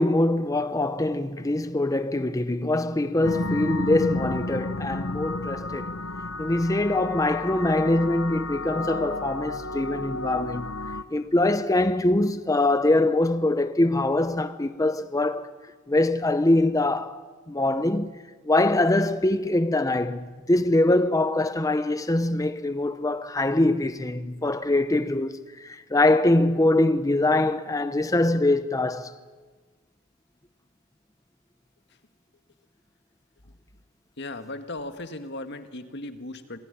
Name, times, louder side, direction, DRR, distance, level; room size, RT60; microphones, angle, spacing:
voice 1, 0.0-6.0 6.4-10.7 11.1-15.5 15.9-17.2 17.5-18.2 18.4-29.1, left 2 dB, 15° left, 0.8 m, -23 dB
sound 1, 3.2-11.0, left 2 dB, 75° left, 1.1 m, -32 dB
voice 2, 34.2-36.6, left 2 dB, 60° left, 1.9 m, -37 dB
27.0 x 18.5 x 10.0 m
head